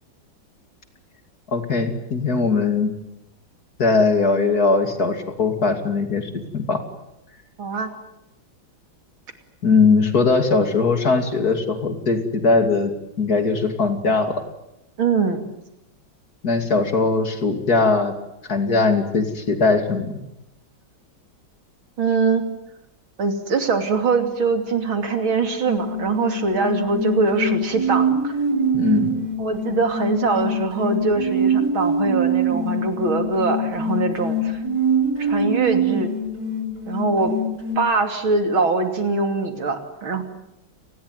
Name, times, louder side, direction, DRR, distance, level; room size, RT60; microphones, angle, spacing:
voice 1, 1.5-2.9 3.8-6.8 9.6-12.9 13.2-14.4 16.4-18.1 18.5-20.1 28.7-29.1, left 4 dB, 50° left, 7 dB, 3.1 m, -20 dB
voice 2, 7.6-7.9 15.0-15.5 22.0-22.5 23.2-28.4 29.4-34.6 35.2-36.1 36.9-37.4 37.8-40.2, right 4 dB, 80° right, 6 dB, 3.7 m, -22 dB
sound 1, 25.7-37.8, right 2 dB, 55° right, 6.4 m, -24 dB
29.5 x 20.5 x 9.5 m, 0.85 s
omnidirectional pair, 2.2 m